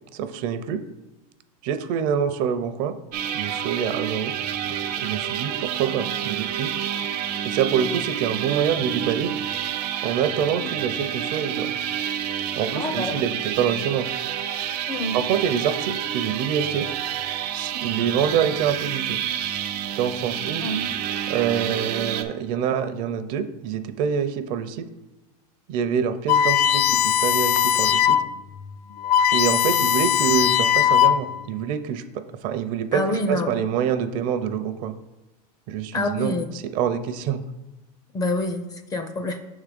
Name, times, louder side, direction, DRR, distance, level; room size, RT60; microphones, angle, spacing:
voice 1, 0.1-0.8 1.6-2.9 3.3-4.4 4.7-6.7 7.4-9.3 10.0-11.7 12.5-14.1 15.1-16.9 17.5-19.2 20.0-20.7 21.3-24.8 25.7-28.2 29.3-32.0 32.4-33.0 33.3-34.9 35.7-36.3 36.7-37.4, right 8 dB, 45° right, 9 dB, 0.6 m, -26 dB
sound 1, 3.1-22.2, right 10 dB, 85° right, 0.7 m, -29 dB
voice 2, 12.8-13.2 14.9-15.2 20.6-20.8 32.9-33.5 35.9-36.5 38.1-39.4, left 1 dB, 20° left, 7 dB, 0.4 m, -27 dB
sound 2, 26.3-28.3 28.7-28.8 29.0-31.4, left 10 dB, 75° left, 0.4 m, -19 dB
6.2 x 3.6 x 5.2 m, 1.1 s
supercardioid pair, 150°, 20 cm